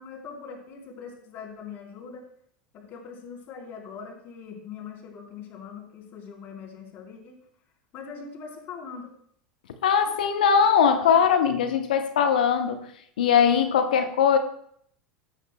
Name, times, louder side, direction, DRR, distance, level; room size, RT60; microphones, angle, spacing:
voice 1, 0.0-2.3 2.7-7.4 7.9-9.1, left 6 dB, 45° left, -2 dB, 3.8 m, -41 dB
voice 2, 9.8-12.9 13.2-14.4, left 7 dB, 80° left, 8 dB, 0.8 m, -21 dB
14.0 x 9.3 x 2.2 m, 0.65 s
hypercardioid pair, 90°, 5 cm